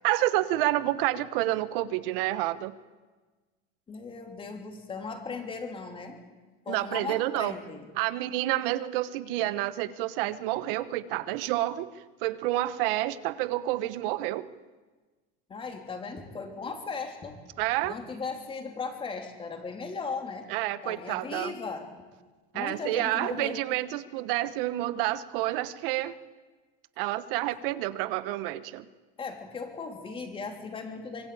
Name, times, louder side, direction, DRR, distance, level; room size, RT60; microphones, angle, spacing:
voice 1, 0.0-2.7 6.7-7.5 7.9-11.9 12.2-14.5 17.6-18.0 20.5-21.5 22.5-26.2 27.0-28.8, right 15 dB, 60° right, 14 dB, 1.3 m, -29 dB
voice 2, 3.9-6.2 6.6-7.9 15.5-17.4 17.8-20.5 20.8-21.9 22.5-23.6 29.2-31.3, left 4 dB, 15° left, 4 dB, 3.3 m, -37 dB
25.0 x 23.0 x 8.7 m, 1.3 s
supercardioid pair, 160°, 31 cm